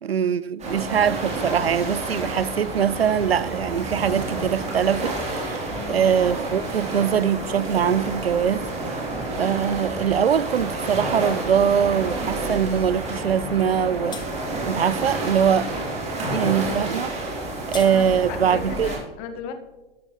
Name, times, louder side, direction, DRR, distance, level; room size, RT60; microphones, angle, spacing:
voice 1, 0.0-5.6 5.9-8.6 9.3-14.2 14.6-15.7 16.3-17.1 17.7-18.9, right 8 dB, 85° right, 0.5 m, -22 dB
sound 1, 0.6-19.0, right 2 dB, 20° right, 3.5 m, -29 dB
voice 2, 5.6-6.1 17.8-19.5, left 7 dB, 40° left, 1.5 m, -36 dB
sound 2, 13.6-13.8 14.1-14.3 17.3-17.9, left 7 dB, 15° left, 0.8 m, -38 dB
13.0 x 12.5 x 3.1 m
figure-of-eight pair, 100°, 30 cm